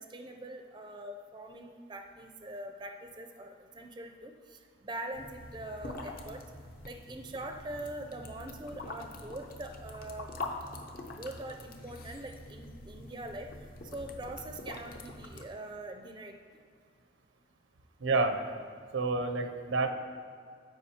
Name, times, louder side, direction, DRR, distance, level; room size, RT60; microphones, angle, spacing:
voice 1, 0.0-6.4 6.8-10.3 11.1-13.5 13.9-16.6, right 1 dB, 25° right, 4 dB, 0.4 m, -43 dB
sound 1, 5.1-15.5, left 2 dB, 50° left, 0.6 m, -44 dB
voice 2, 18.0-18.4 18.9-19.9, right 3 dB, 85° right, 6 dB, 0.6 m, -28 dB
13.5 x 4.9 x 2.8 m, 2.1 s
head